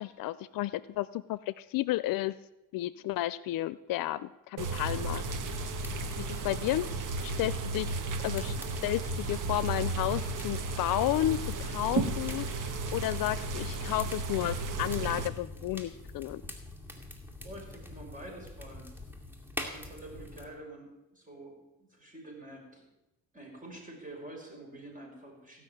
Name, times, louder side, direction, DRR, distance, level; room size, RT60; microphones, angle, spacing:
voice 1, 0.0-2.4 2.7-5.2 6.2-6.9 7.2-8.5 8.8-16.4, left 15 dB, 80° left, 17 dB, 0.5 m, -32 dB
sound 1, 4.6-15.3, right 3 dB, 65° right, 1.5 m, -34 dB
sound 2, 4.7-20.5, left 1 dB, 5° right, 2.3 m, -45 dB
voice 2, 6.4-6.7 17.4-18.9 19.7-22.9 23.3-25.6, right 1 dB, 25° right, 0 dB, 5.6 m, -47 dB
16.5 x 6.1 x 9.1 m, 0.96 s
cardioid pair, 90°, 33 cm